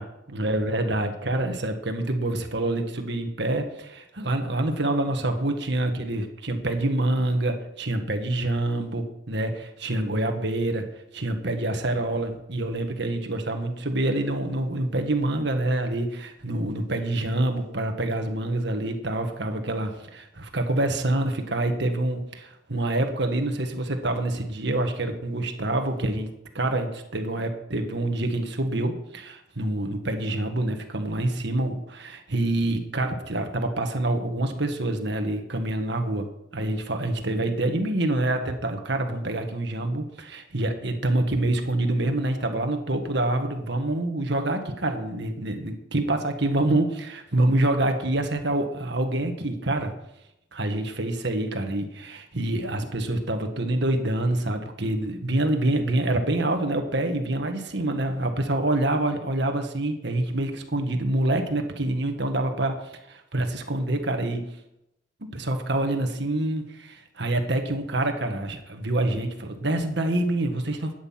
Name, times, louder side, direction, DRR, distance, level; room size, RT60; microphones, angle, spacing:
voice 1, 0.3-10.8 11.1-26.3 26.5-49.9 50.5-64.5 65.2-70.9, right 1 dB, 65° right, 5 dB, 1.7 m, -26 dB
13.0 x 9.5 x 5.9 m, 0.84 s
head